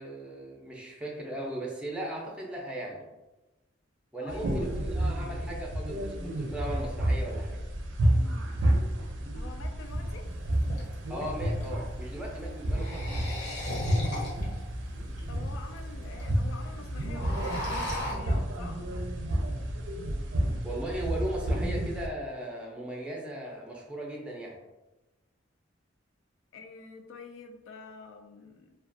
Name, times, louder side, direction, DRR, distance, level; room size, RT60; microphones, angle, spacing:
voice 1, 0.0-3.0 4.1-7.6 11.1-13.2 20.6-24.6, right 1 dB, 5° right, -2 dB, 0.4 m, -37 dB
voice 2, 4.2-4.7 9.3-10.2 15.3-18.8 26.5-28.7, left 4 dB, 85° left, 4 dB, 0.4 m, -47 dB
sound 1, 4.3-22.1, right 1 dB, 75° right, 0.4 m, -31 dB
sound 2, 9.9-10.0 10.5-11.7 12.6-14.6 15.2-15.3 15.5-15.6 15.8-16.2 16.5-16.7 17.0-18.1, left 1 dB, 65° left, 0.8 m, -36 dB
2.4 x 2.2 x 2.5 m, 1.0 s
head